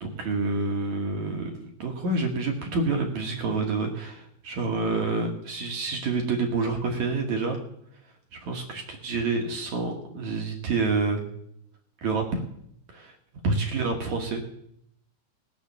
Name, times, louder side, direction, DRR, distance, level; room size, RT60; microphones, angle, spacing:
voice 1, 0.0-1.5 1.8-7.6 8.4-11.2 12.0-12.4 12.9-13.1 13.4-14.4, right 3 dB, 60° right, 2 dB, 2.0 m, -28 dB
18.5 x 7.2 x 6.8 m, 0.74 s
omnidirectional pair, 5.2 m